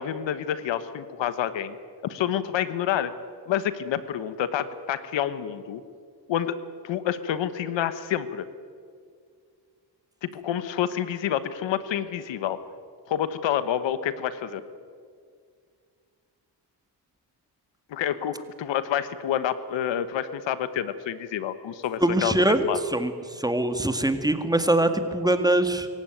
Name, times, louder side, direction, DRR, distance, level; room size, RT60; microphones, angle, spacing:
voice 1, 0.0-1.8 2.0-3.1 3.5-5.8 6.3-6.6 6.8-8.5 10.2-12.6 13.1-14.6 17.9-22.8, left 10 dB, 90° left, 13 dB, 1.3 m, -28 dB
voice 2, 22.0-22.7 22.9-23.1 23.4-25.9, right 1 dB, 10° right, 8 dB, 2.0 m, -22 dB
25.0 x 15.5 x 9.2 m, 2.1 s
cardioid pair, 80°, 43 cm